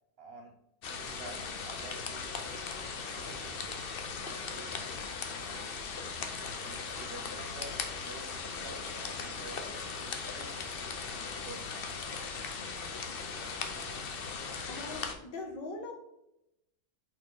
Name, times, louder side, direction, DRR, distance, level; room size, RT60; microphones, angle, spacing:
voice 1, 0.2-0.6 0.9-2.4 3.1-4.8 5.4-5.9 6.6-10.6 11.4-12.1, right 3 dB, 90° right, 3 dB, 0.5 m, -50 dB
sound 1, 0.8-15.1, left 5 dB, 60° left, 0.5 m, -38 dB
voice 2, 14.7-15.9, left 3 dB, 80° left, 2 dB, 1.9 m, -41 dB
5.7 x 4.4 x 3.8 m, 0.85 s
omnidirectional pair, 1.9 m